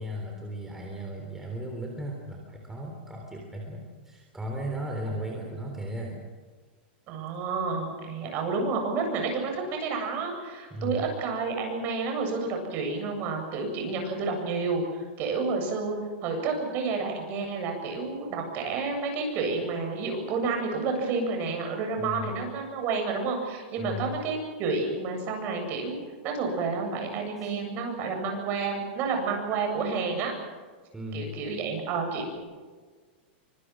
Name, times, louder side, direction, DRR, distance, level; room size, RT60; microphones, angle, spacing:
voice 1, 0.0-6.2 10.7-11.1 22.0-22.3 23.8-24.1 27.4-27.5 30.9-31.3, equal, 5° right, 0 dB, 3.5 m, -36 dB
voice 2, 7.1-15.9 16.2-25.9 26.2-30.3 31.1-32.4, right 4 dB, 35° right, 3 dB, 7.9 m, -30 dB
26.5 x 25.0 x 6.3 m, 1.4 s
supercardioid pair, 160°, 6 cm